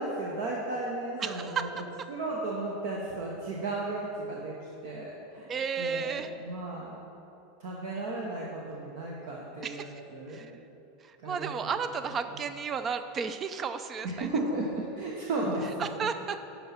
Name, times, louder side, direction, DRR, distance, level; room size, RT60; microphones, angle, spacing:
voice 1, 0.0-4.6 4.8-5.5 5.8-6.9 7.6-10.5 11.2-11.5 11.8-12.2 14.0-15.8, right 2 dB, 55° right, -3 dB, 1.1 m, -34 dB
voice 2, 1.2-1.6 5.5-6.3 9.6-9.9 10.3-10.5 11.2-14.3 15.8-16.4, right 6 dB, 30° right, 10 dB, 0.5 m, -33 dB
11.0 x 4.2 x 5.8 m, 2.9 s
figure-of-eight pair, 85°, 0 cm